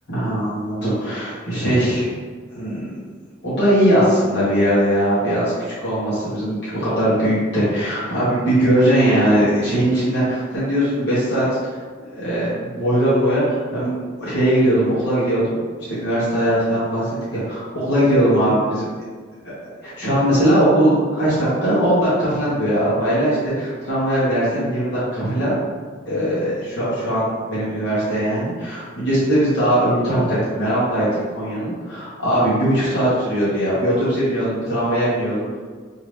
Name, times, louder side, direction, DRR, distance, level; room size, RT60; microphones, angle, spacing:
voice 1, 0.1-2.1 2.5-2.9 3.4-17.0 17.3-18.9 19.8-25.6 26.0-31.1 31.4-35.6, right 1 dB, 55° left, -11 dB, 1.3 m, -20 dB
2.8 x 2.8 x 3.2 m, 1.5 s
head